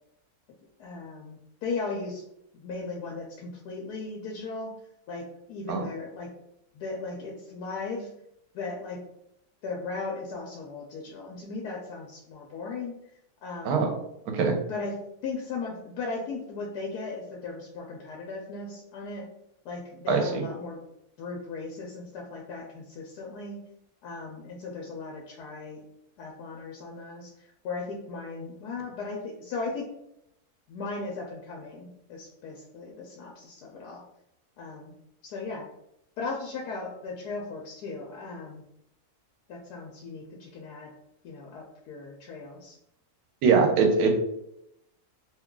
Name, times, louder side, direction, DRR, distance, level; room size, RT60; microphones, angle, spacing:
voice 1, 0.8-2.2 2.5-4.7 5.1-6.3 6.7-8.1 8.5-9.0 9.6-12.9 13.4-13.8 14.7-15.0 15.2-19.3 19.6-20.8 21.2-23.6 24.0-25.8 26.2-27.3 27.6-29.9 30.7-34.0 34.6-34.9 35.2-35.7 36.2-38.6 39.5-40.9 41.2-42.8, left 3 dB, 90° left, -1 dB, 1.2 m, -37 dB
voice 2, 14.3-14.6 20.1-20.5 43.4-44.1, right 5 dB, 75° right, 3 dB, 1.1 m, -22 dB
2.8 x 2.3 x 3.6 m, 0.80 s
omnidirectional pair, 1.6 m